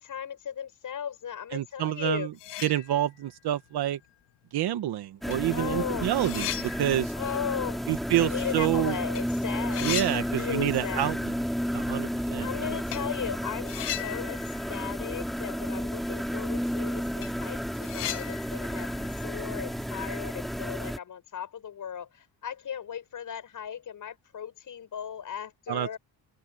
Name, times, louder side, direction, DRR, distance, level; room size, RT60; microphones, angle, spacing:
voice 1, 0.0-2.3 5.5-6.1 7.1-7.8 8.2-11.1 12.4-14.4 14.7-26.0, left 8 dB, 50° left, 6.8 m, -36 dB
voice 2, 1.5-2.3 2.6-4.0 4.5-7.1 7.9-9.0 9.8-11.2 11.7-12.5 25.7-26.0, right 13 dB, 70° right, 1.2 m, -28 dB
sound 1, 2.0-2.1 2.3-3.4 3.8-3.9 4.8-4.9 5.3-8.8 9.0-9.2 9.5-11.1 11.3-11.4 12.9-13.1 13.6-15.8 16.0-16.1 16.6-16.7 17.0-20.2, left 14 dB, 85° left, 1.4 m, -39 dB
sound 2, 5.2-21.0, equal, ahead, 2.5 m, -32 dB
open air
cardioid pair, 140°, 41 cm